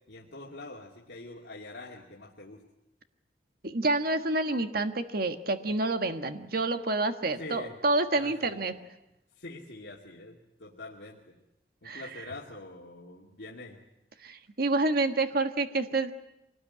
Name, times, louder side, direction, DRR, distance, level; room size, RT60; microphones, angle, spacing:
voice 1, 0.1-2.6 7.4-7.8 8.1-8.6 9.3-11.4 11.8-13.8, left 2 dB, 75° left, -3 dB, 2.6 m, -45 dB
voice 2, 3.6-8.7 11.8-12.0 14.2-16.1, right 2 dB, 60° right, 8 dB, 1.6 m, -28 dB
25.0 x 19.0 x 9.8 m, 0.93 s
head